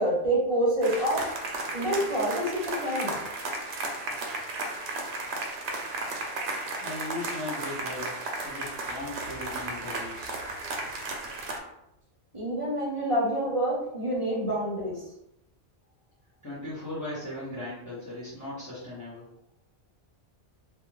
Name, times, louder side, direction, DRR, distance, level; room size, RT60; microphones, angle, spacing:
voice 1, 0.0-1.3 1.7-3.2 12.3-15.1, right 1 dB, 30° right, -6 dB, 0.8 m, -27 dB
sound 1, 0.8-11.6, right 2 dB, 70° right, 0.8 m, -34 dB
voice 2, 6.8-8.2 8.4-10.4 16.4-19.3, left 1 dB, 20° left, -10 dB, 0.5 m, -38 dB
2.3 x 2.3 x 3.0 m, 0.81 s
omnidirectional pair, 1.1 m